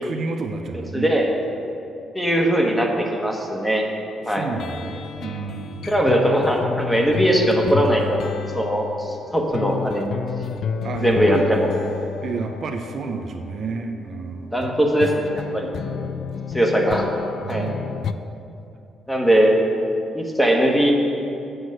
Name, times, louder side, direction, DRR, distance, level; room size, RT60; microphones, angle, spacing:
voice 1, 0.0-1.1 4.3-5.9 10.8-11.5 12.2-14.6 15.8-16.2 17.4-18.1, right 4 dB, 55° right, 4 dB, 0.6 m, -30 dB
voice 2, 0.9-1.4 2.1-3.8 4.3-4.5 5.9-10.2 11.0-11.7 14.5-15.7 16.5-17.1 17.5-17.7 19.1-19.5 20.1-20.9, equal, 5° left, 0 dB, 1.3 m, -20 dB
sound 1, 4.5-14.0 14.6-18.1, left 7 dB, 65° left, 0.3 m, -31 dB
7.9 x 6.0 x 6.5 m, 2.7 s
cardioid pair, 90°, 0 cm